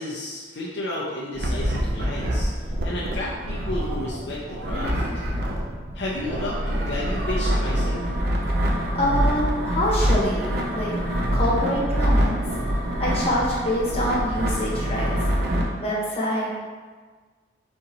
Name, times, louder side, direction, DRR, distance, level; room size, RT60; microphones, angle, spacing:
voice 1, 0.0-5.0 5.9-8.0, left 1 dB, 60° left, -5 dB, 0.5 m, -32 dB
sound 1, 1.3-15.6, equal, 55° right, 0.6 m, -25 dB
voice 2, 8.9-10.5 10.7-10.9 11.3-12.4 13.0-15.1 15.8-16.5, equal, 35° left, -7 dB, 1.3 m, -25 dB
4.3 x 3.7 x 2.9 m, 1.5 s
head